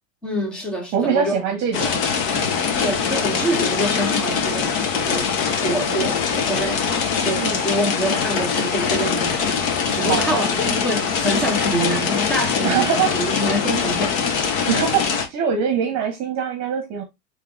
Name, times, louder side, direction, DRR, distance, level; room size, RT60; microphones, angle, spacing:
voice 1, 0.2-1.3 2.8-5.3 5.6-14.3, right 1 dB, ahead, 0.3 m, -26 dB
voice 2, 0.9-2.0 2.3-2.5 5.8-6.1 7.4-7.6 10.0-10.4 12.6-13.3 14.6-17.0, right 7 dB, 35° right, 0.9 m, -23 dB
sound 1, 1.7-15.3, left 6 dB, 55° left, 1.1 m, -22 dB
4.6 x 2.9 x 3.7 m
supercardioid pair, 150°, 48 cm